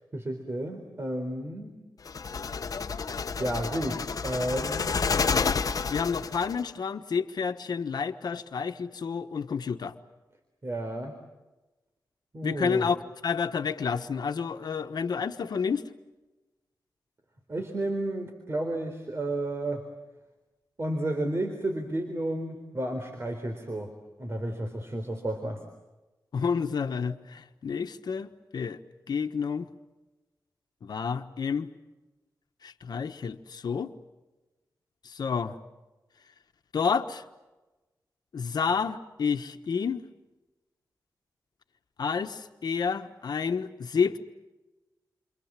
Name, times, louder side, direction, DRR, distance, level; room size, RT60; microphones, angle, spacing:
voice 1, 0.1-1.7 3.4-4.9 10.6-11.1 12.3-12.8 17.5-19.9 20.8-23.9 24.2-25.6, right 1 dB, 35° right, 5 dB, 3.8 m, -32 dB
sound 1, 2.1-6.6, left 5 dB, 60° left, 1.1 m, -29 dB
voice 2, 5.9-9.9 12.4-13.0 13.2-15.9 26.3-28.8 29.1-29.7 30.8-31.7 32.6-33.9 35.0-35.5 36.7-37.2 38.3-40.0 42.0-44.2, left 6 dB, 75° left, 7 dB, 1.3 m, -29 dB
29.0 x 26.5 x 7.5 m, 1.1 s
wide cardioid pair, 100°, 7 cm